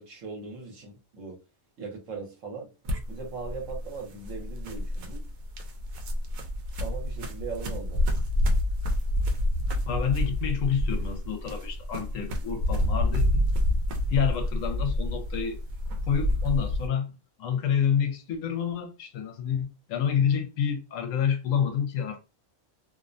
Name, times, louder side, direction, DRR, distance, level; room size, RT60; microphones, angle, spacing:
voice 1, 0.0-1.4 1.8-2.7 3.1-5.2 6.8-8.0, right 5 dB, 70° right, 1.2 m, -39 dB
sound 1, 2.8-16.9, left 1 dB, 90° right, 1.1 m, -28 dB
voice 2, 9.9-13.4 14.1-15.6 16.1-17.1 17.4-22.2, left 8 dB, 75° left, 0.9 m, -28 dB
2.6 x 2.1 x 2.5 m
omnidirectional pair, 1.4 m